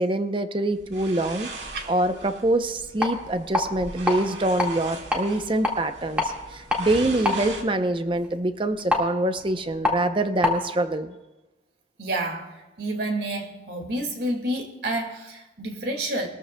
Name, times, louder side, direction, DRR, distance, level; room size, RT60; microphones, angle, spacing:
voice 1, 0.0-11.2, right 1 dB, 30° right, 9 dB, 0.6 m, -25 dB
sound 1, 0.7-7.6, right 3 dB, 85° right, 2.0 m, -40 dB
sound 2, 2.8-10.6, left 2 dB, 5° right, 1.8 m, -29 dB
voice 2, 12.0-16.3, right 1 dB, 65° right, 3 dB, 2.1 m, -29 dB
20.5 x 14.0 x 2.3 m, 1.1 s
head